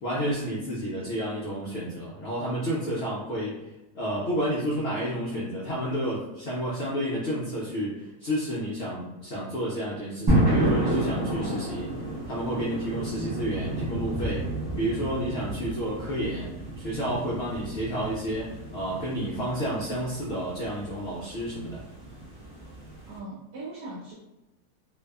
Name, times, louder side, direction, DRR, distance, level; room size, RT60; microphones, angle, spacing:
voice 1, 0.0-3.7 3.9-11.9 12.3-14.5 14.7-16.5 16.8-21.8, equal, 85° left, -7 dB, 0.5 m, -30 dB
sound 1, 10.3-23.2, right 1 dB, 35° right, 0.3 m, -30 dB
voice 2, 11.0-11.6 23.1-24.1, equal, 75° right, -7 dB, 1.2 m, -39 dB
2.6 x 2.3 x 2.2 m, 1.0 s
omnidirectional pair, 1.7 m